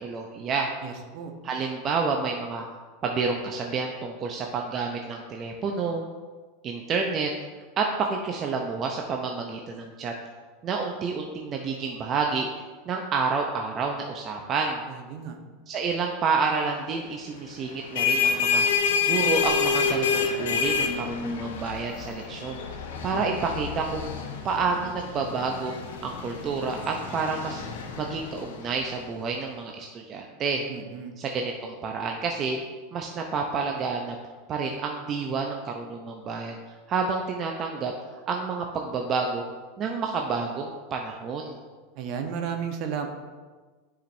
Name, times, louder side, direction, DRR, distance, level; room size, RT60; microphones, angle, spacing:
voice 1, 0.0-0.7 1.4-2.7 3.0-6.0 6.6-7.3 7.8-10.1 10.6-14.8 15.7-18.6 19.0-22.6 23.0-24.1 24.4-27.6 28.0-30.6 31.2-32.6 32.9-34.2 34.5-37.9 38.3-39.4 39.8-41.6, right 4 dB, 40° right, 2 dB, 0.7 m, -29 dB
voice 2, 0.8-1.3 14.9-15.4 30.7-31.1 41.9-43.1, right 7 dB, 55° right, 4 dB, 1.0 m, -33 dB
sound 1, 17.7-29.0, left 5 dB, 75° left, 0.9 m, -28 dB
10.0 x 5.0 x 2.7 m, 1.4 s
hypercardioid pair, 95°, 0 cm